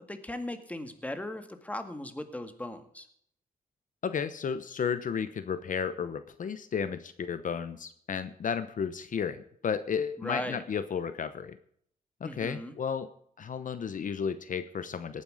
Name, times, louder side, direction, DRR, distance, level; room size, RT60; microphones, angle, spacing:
voice 1, 0.0-3.1 10.2-10.6 12.2-12.7, left 1 dB, 10° left, 7 dB, 2.0 m, -38 dB
voice 2, 4.0-11.6 12.2-13.1 13.4-15.2, left 7 dB, 60° left, 12 dB, 0.9 m, -33 dB
18.5 x 9.8 x 4.9 m, 0.65 s
cardioid pair, 105°, 15 cm